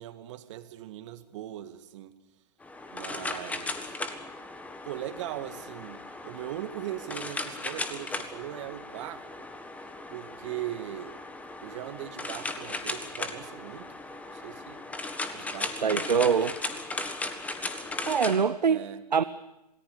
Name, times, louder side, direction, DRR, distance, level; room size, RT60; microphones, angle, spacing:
voice 1, 0.0-2.1 2.9-3.9 4.8-9.5 10.1-11.2 11.6-14.8 15.3-16.9 18.6-19.0, right 13 dB, 45° right, 10 dB, 2.1 m, -40 dB
sound 1, 2.6-18.4, left 2 dB, 5° left, 1.6 m, -37 dB
voice 2, 15.8-16.5 18.0-19.2, right 6 dB, 85° right, 13 dB, 0.8 m, -24 dB
27.0 x 18.5 x 8.6 m, 0.96 s
hypercardioid pair, 120°, 21 cm